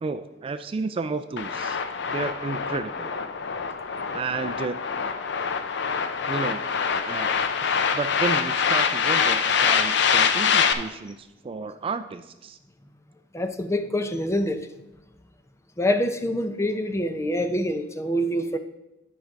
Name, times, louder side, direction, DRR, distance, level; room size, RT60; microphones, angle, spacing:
voice 1, 0.0-3.1 4.1-4.8 6.3-6.6 7.0-7.3 7.6-12.6, right 4 dB, 30° right, 9 dB, 0.3 m, -32 dB
sound 1, 1.4-10.7, left 6 dB, 70° left, 0.6 m, -24 dB
voice 2, 13.3-14.7 15.8-18.6, equal, 15° left, 8 dB, 0.6 m, -25 dB
9.7 x 5.1 x 4.6 m, 0.96 s
head